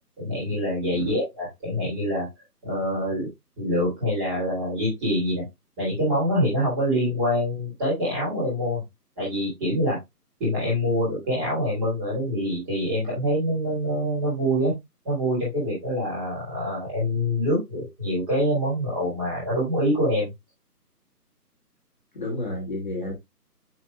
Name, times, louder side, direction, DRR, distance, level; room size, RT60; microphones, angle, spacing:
voice 1, 0.2-2.3 2.6-3.3 3.6-5.4 5.8-8.8 9.2-10.0 10.4-14.7 15.0-20.3, equal, 10° right, 3.2 m, -25 dB
voice 2, 22.1-23.1, left 1 dB, 30° left, 2.3 m, -31 dB
7.3 x 6.2 x 2.3 m
figure-of-eight pair, 165°, 48 cm